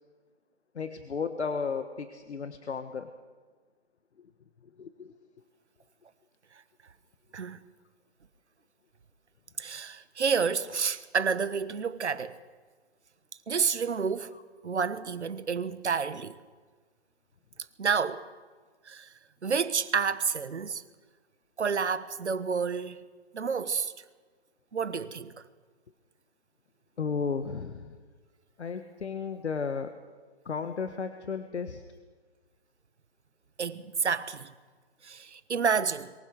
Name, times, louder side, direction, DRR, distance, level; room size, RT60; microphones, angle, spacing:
voice 1, 0.7-3.1 4.8-5.1 27.0-28.0 28.6-29.9 30.4-31.8, left 5 dB, 80° left, 1.5 m, -34 dB
voice 2, 9.6-12.4 13.5-16.3 17.8-18.3 18.9-19.1 19.4-20.8 21.6-23.0 23.3-23.9 24.7-25.3 33.6-34.5 35.0-36.1, right 6 dB, 85° right, 1.3 m, -29 dB
23.5 x 18.5 x 6.5 m
hypercardioid pair, 150°, 34 cm